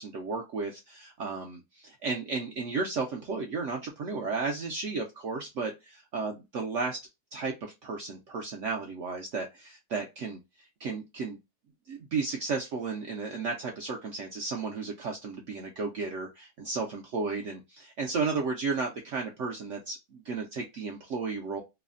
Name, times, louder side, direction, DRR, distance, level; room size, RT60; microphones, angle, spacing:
voice 1, 0.0-7.0 7.3-10.4 10.8-11.4 11.9-21.6, right 4 dB, 75° right, 2 dB, 0.7 m, -33 dB
3.1 x 2.0 x 2.3 m, 0.23 s
omnidirectional pair, 1.8 m